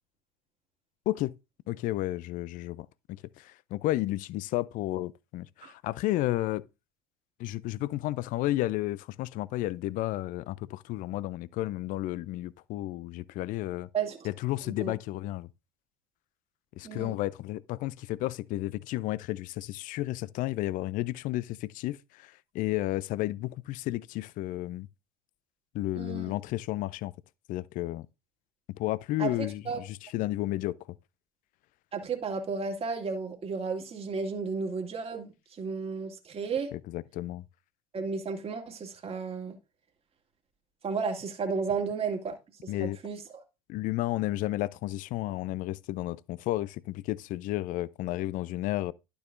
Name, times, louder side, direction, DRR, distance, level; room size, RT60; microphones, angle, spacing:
voice 1, 1.7-6.6 7.4-13.9 14.2-15.5 16.8-24.9 25.7-27.1 27.5-28.1 28.7-30.8 36.7-37.4 42.7-43.0 43.7-48.9, left 16 dB, 45° left, 0.4 m, -32 dB
voice 2, 13.9-14.3 14.6-14.9 16.8-17.1 25.9-26.3 29.2-29.3 29.7-29.8 31.9-36.7 37.9-39.6 40.8-42.3 42.6-43.2, right 5 dB, 30° right, 2.1 m, -33 dB
11.5 x 6.8 x 2.6 m
hypercardioid pair, 70°, 19 cm